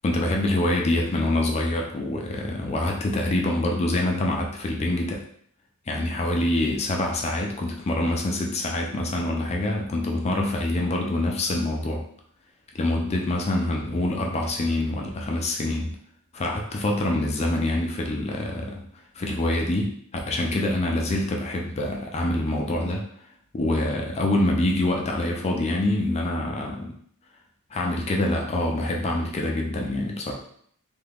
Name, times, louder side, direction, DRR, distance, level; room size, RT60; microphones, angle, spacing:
voice 1, 0.0-5.2 5.9-12.0 12.7-16.0 16.3-18.9 19.1-23.1 23.5-26.9 27.7-30.3, left 1 dB, 30° left, 1 dB, 0.4 m, -25 dB
2.7 x 2.4 x 3.4 m, 0.63 s
head